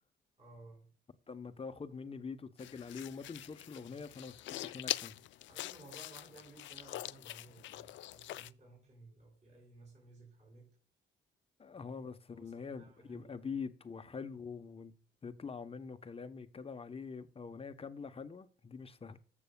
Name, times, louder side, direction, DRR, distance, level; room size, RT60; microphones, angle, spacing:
voice 1, 0.4-0.9 5.5-10.8 11.7-11.8 12.3-13.3, right 2 dB, 35° right, 4.7 m, -57 dB
voice 2, 1.3-5.2 11.6-14.9 15.2-19.2, left 5 dB, 30° left, 0.9 m, -44 dB
sound 1, 2.6-8.5, left 15 dB, 70° left, 0.4 m, -43 dB
14.0 x 6.9 x 2.2 m
cardioid pair, 90°, 20 cm